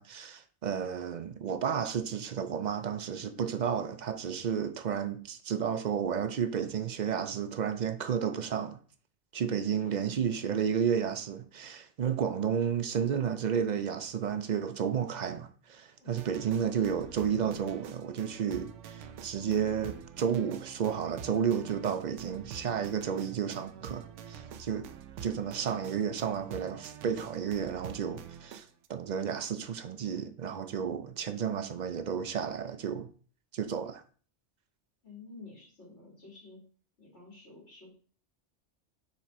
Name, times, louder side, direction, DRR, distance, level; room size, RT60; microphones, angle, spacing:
voice 1, 0.0-8.8 9.3-24.9 25.2-28.6 28.9-33.1 33.5-34.0, right 7 dB, 55° right, 0.5 m, -32 dB
sound 1, 16.1-28.9, right 8 dB, 80° right, 0.9 m, -46 dB
voice 2, 35.0-36.6 37.0-37.9, left 3 dB, 65° left, 2.4 m, -51 dB
5.9 x 4.1 x 4.2 m
omnidirectional pair, 1.2 m